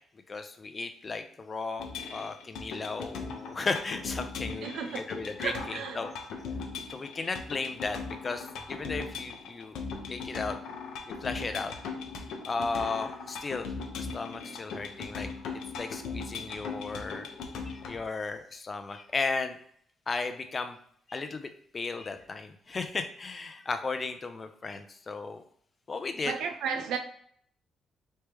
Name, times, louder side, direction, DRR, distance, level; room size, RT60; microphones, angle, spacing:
voice 1, 0.3-4.7 4.9-6.1 6.9-9.8 10.1-10.6 11.2-11.7 12.5-15.3 15.7-17.3 17.7-19.6 20.1-20.8 21.1-25.4 25.9-26.3, left 4 dB, 35° left, 0.5 m, -35 dB
sound 1, 1.8-18.0, left 4 dB, 85° left, 0.7 m, -39 dB
voice 2, 4.6-5.1 5.4-6.0 26.2-27.0, right 6 dB, 80° right, 0.5 m, -33 dB
3.2 x 3.1 x 3.3 m
cardioid pair, 90°, 0 cm